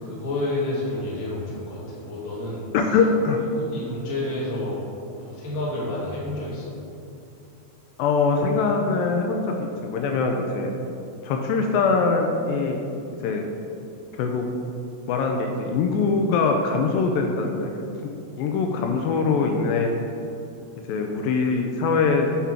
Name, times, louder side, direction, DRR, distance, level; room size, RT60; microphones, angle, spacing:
voice 1, 0.0-2.6 3.5-4.8 5.3-6.6, left 1 dB, 65° left, -7 dB, 0.6 m, -29 dB
voice 2, 2.7-3.4 8.0-10.7 11.2-12.8 13.2-13.4 14.1-14.5 15.1-17.8 18.4-19.9 20.9-22.3, left 4 dB, 80° left, 3 dB, 2.1 m, -22 dB
7.2 x 3.6 x 5.6 m, 2.7 s
omnidirectional pair, 4.4 m